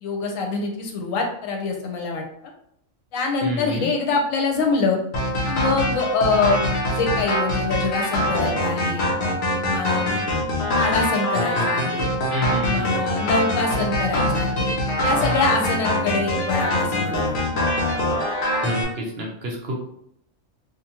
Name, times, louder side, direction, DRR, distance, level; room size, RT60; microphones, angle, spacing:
voice 1, 0.0-2.5 3.1-5.0 5.5-9.0 9.5-10.1 10.8-12.1 12.6-14.7 15.0-17.3, left 4 dB, 90° left, 2 dB, 1.0 m, -25 dB
voice 2, 3.4-3.9 12.3-13.0 18.6-19.9, right 1 dB, 60° right, -1 dB, 0.7 m, -29 dB
sound 1, 5.1-18.8, left 1 dB, 50° left, 0.7 m, -23 dB
2.6 x 2.2 x 2.9 m, 0.70 s
omnidirectional pair, 1.3 m